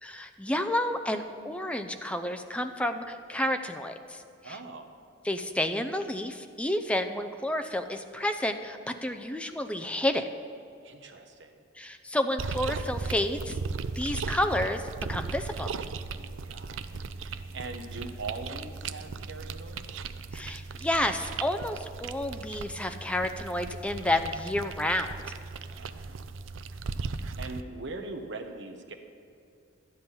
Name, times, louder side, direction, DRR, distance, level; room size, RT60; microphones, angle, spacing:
voice 1, 0.0-4.6 5.2-10.2 11.8-13.6 14.0-14.8 15.1-15.7 20.3-25.2, left 1 dB, 5° left, 7 dB, 0.6 m, -30 dB
voice 2, 4.4-4.9 10.8-11.6 16.4-20.0 25.7-26.4 27.2-28.9, right 3 dB, 65° right, 5 dB, 1.1 m, -42 dB
sound 1, 12.4-27.6, right 4 dB, 85° right, 0.5 m, -37 dB
12.0 x 10.5 x 5.6 m, 2.5 s
head